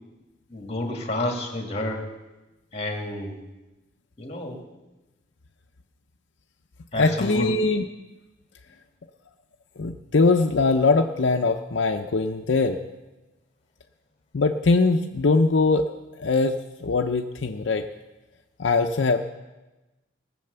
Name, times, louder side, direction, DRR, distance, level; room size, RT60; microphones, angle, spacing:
voice 1, 0.5-2.1 2.7-3.4 4.2-4.6 6.9-7.5, left 1 dB, 35° left, 2 dB, 2.2 m, -30 dB
voice 2, 7.0-7.8 9.8-12.8 14.3-15.8 16.2-17.8 18.6-19.3, left 3 dB, 75° left, 5 dB, 0.6 m, -21 dB
18.5 x 7.7 x 6.8 m, 1.1 s
head